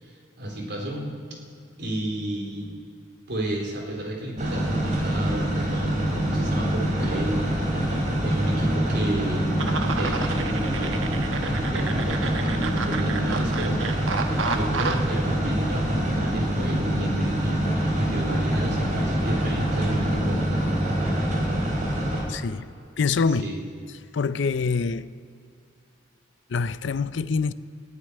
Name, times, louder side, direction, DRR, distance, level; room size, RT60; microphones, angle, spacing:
voice 1, 0.0-1.1 1.8-2.7 3.3-9.5 9.8-13.8 14.4-20.7 23.3-23.6, right 1 dB, 65° right, 3.8 m, -32 dB
sound 1, 4.4-22.2, equal, 40° right, 3.6 m, -25 dB
sound 2, 9.6-15.1, right 4 dB, 90° right, 1.1 m, -32 dB
voice 2, 22.3-22.7 23.0-23.5 24.1-25.1 26.5-27.5, left 5 dB, 65° left, 0.5 m, -25 dB
15.0 x 9.9 x 9.8 m
head